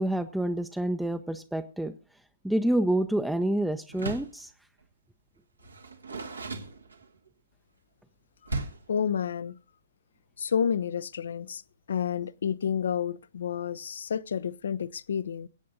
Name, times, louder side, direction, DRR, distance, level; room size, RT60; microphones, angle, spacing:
voice 1, 0.0-1.9 2.4-4.5, right 1 dB, ahead, 0.5 m, -28 dB
Door, 3.9-4.4 5.6-7.3 8.5-9.0, right 3 dB, 85° right, 1.4 m, -36 dB
voice 2, 8.9-9.6 10.4-11.6 11.9-15.5, left 8 dB, 65° left, 0.5 m, -30 dB
23.0 x 8.5 x 2.6 m
figure-of-eight pair, 115°, 0 cm